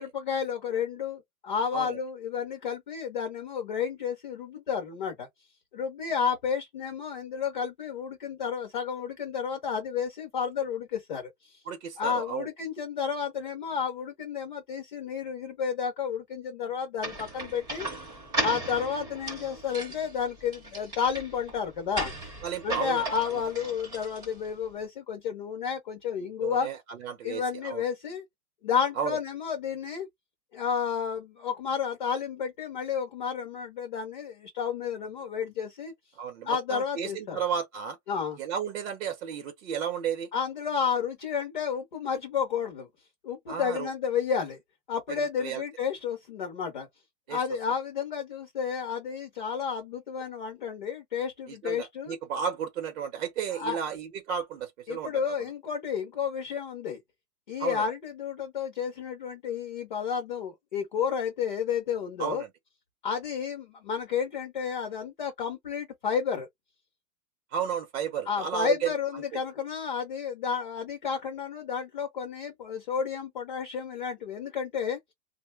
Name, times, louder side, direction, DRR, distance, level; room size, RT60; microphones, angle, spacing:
voice 1, 0.0-5.3 5.7-11.6 12.0-17.9 18.4-22.3 22.6-26.7 27.2-28.2 28.6-30.1 30.5-35.9 36.4-37.4 38.1-38.4 40.3-42.9 43.2-44.6 44.9-46.9 47.3-52.2 53.5-53.8 54.9-57.0 57.5-62.4 63.0-66.5 68.3-75.0, left 7 dB, 30° left, 0.5 m, -31 dB
voice 2, 11.7-12.5 18.3-18.5 22.4-23.0 26.4-27.8 28.9-29.2 36.1-38.0 38.4-40.3 43.5-43.9 45.1-45.6 47.3-47.4 51.5-55.3 57.6-57.9 62.2-62.5 67.5-69.4, right 8 dB, 50° right, 0.8 m, -33 dB
sound 1, 17.0-24.7, right 1 dB, 10° right, 0.6 m, -37 dB
3.6 x 2.1 x 3.1 m
hypercardioid pair, 170°, 49 cm